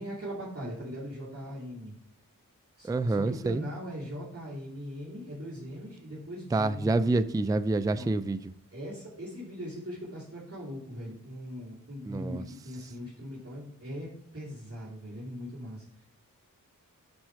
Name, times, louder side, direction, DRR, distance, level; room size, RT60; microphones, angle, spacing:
voice 1, 0.0-1.9 2.8-7.0 7.9-8.1 8.7-16.0, equal, 45° right, -8 dB, 2.7 m, -40 dB
voice 2, 2.8-3.6 6.5-8.4 12.0-12.4, right 2 dB, 10° right, 11 dB, 0.3 m, -27 dB
9.5 x 4.4 x 4.6 m, 0.77 s
wide cardioid pair, 70°, 33 cm